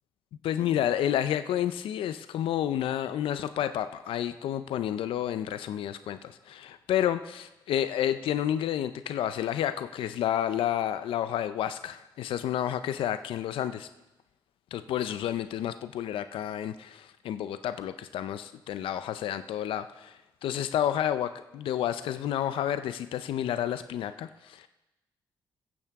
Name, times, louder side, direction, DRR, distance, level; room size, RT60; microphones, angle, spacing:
voice 1, 0.4-13.9 14.7-24.7, left 10 dB, 80° left, 12 dB, 0.5 m, -30 dB
15.0 x 8.8 x 3.6 m, 0.97 s
cardioid pair, 65°, 9 cm